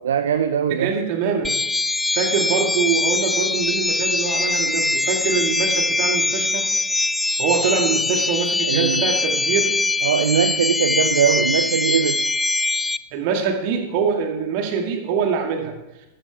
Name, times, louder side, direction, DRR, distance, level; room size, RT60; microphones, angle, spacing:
voice 1, 0.0-1.0 8.6-9.1 10.0-12.2, right 8 dB, 65° right, 11 dB, 0.5 m, -21 dB
voice 2, 0.7-1.5 2.1-6.6 7.4-9.7 13.1-15.7, right 6 dB, 45° right, 3 dB, 2.3 m, -24 dB
sound 1, 1.4-13.0, left 2 dB, 5° left, 0.3 m, -22 dB
14.0 x 13.5 x 3.5 m, 0.95 s
figure-of-eight pair, 90°, 0 cm